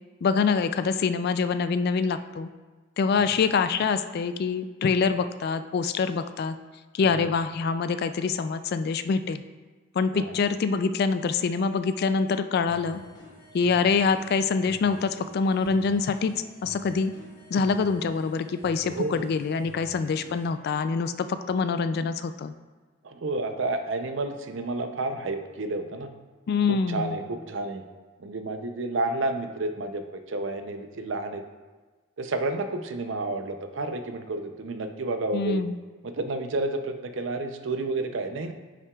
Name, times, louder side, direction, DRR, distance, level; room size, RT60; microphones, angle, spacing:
voice 1, 0.2-2.5 3.0-6.5 6.9-9.4 10.0-13.0 13.5-16.3 16.6-17.1 17.5-22.5 26.5-27.2 35.3-35.7, left 5 dB, 50° left, 11 dB, 0.3 m, -25 dB
sound 1, 12.7-20.5, left 1 dB, 70° left, 2.2 m, -49 dB
voice 2, 18.8-19.3 23.0-26.1 26.7-27.8 28.2-31.4 32.2-35.6 36.0-38.5, right 2 dB, 65° right, 7 dB, 0.6 m, -30 dB
9.4 x 5.8 x 2.3 m, 1.3 s
head